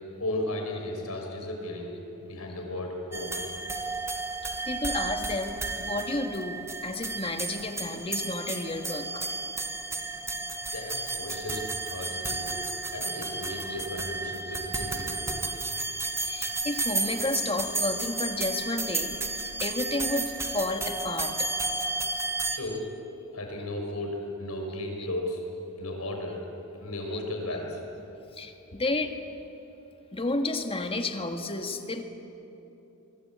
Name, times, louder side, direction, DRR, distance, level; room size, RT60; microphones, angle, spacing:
voice 1, 0.2-1.9 2.2-3.3 10.7-12.6 12.9-15.5 22.5-22.8 23.3-25.4 25.8-26.4 26.8-27.8, left 1 dB, 85° left, 2 dB, 5.9 m, -35 dB
sound 1, 3.1-22.6, right 3 dB, 15° right, 1.4 m, -32 dB
voice 2, 4.7-9.2 11.5-11.6 12.0-12.1 13.7-13.8 16.2-21.5 28.3-29.2 30.1-32.0, left 2 dB, 25° left, 5 dB, 1.7 m, -32 dB
24.5 x 24.0 x 8.7 m, 3.0 s
head